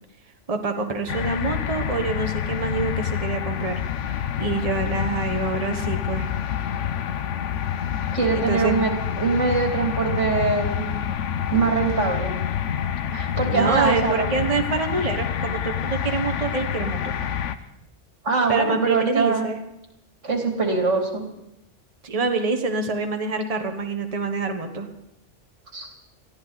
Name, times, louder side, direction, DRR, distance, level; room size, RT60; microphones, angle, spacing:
voice 1, 0.5-6.3 8.3-8.9 13.5-17.0 18.5-19.6 22.0-24.9, right 4 dB, 30° right, 5 dB, 1.3 m, -26 dB
sound 1, 1.1-17.6, left 9 dB, 85° left, 1.1 m, -27 dB
voice 2, 8.1-10.8 11.5-12.4 13.1-14.3 18.2-19.5 20.2-21.2 25.7-25.9, right 4 dB, 90° right, 3 dB, 3.0 m, -23 dB
21.0 x 14.0 x 4.0 m, 0.86 s
omnidirectional pair, 1.2 m